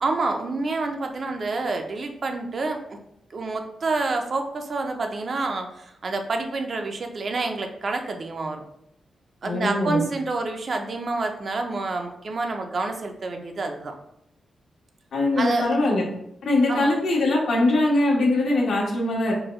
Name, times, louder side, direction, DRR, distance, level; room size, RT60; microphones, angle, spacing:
voice 1, 0.0-3.0 3.3-8.6 9.4-13.9 15.4-15.7 16.7-16.9, right 3 dB, 45° right, 4 dB, 0.4 m, -28 dB
voice 2, 9.4-10.0 15.1-16.0 16.4-19.3, left 2 dB, 70° left, -2 dB, 1.1 m, -22 dB
4.5 x 2.2 x 3.1 m, 0.75 s
wide cardioid pair, 145°, 0 cm